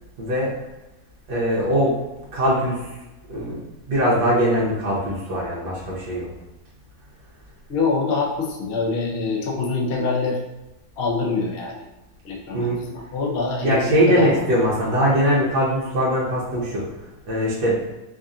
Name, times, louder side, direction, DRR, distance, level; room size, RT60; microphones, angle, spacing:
voice 1, 0.2-0.5 1.3-1.9 2.3-2.8 3.3-3.6 3.9-6.3 12.5-12.8 13.6-16.8 17.3-17.8, equal, 65° right, -7 dB, 1.4 m, -21 dB
voice 2, 7.7-10.4 11.0-11.8 12.2-14.3, left 4 dB, 75° left, -2 dB, 0.5 m, -25 dB
5.1 x 2.6 x 2.4 m, 1.0 s
omnidirectional pair, 2.1 m